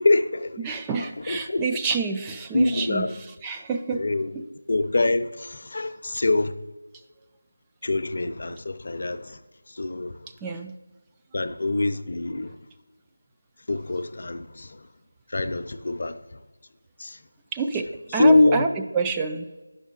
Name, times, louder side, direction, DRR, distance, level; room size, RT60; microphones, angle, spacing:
voice 1, 0.0-0.7 1.3-1.6 2.5-3.1 3.9-4.3 4.7-6.5 7.8-9.4 9.7-10.2 11.3-12.5 13.7-14.9 15.3-16.2 17.0-17.2 18.2-18.6, left 2 dB, 50° left, 0.6 m, -24 dB
voice 2, 0.6-4.1 4.4-4.5 10.4-10.7 17.5-19.5, right 4 dB, 10° right, 0.3 m, -28 dB
10.0 x 6.4 x 3.7 m
figure-of-eight pair, 175°, 0 cm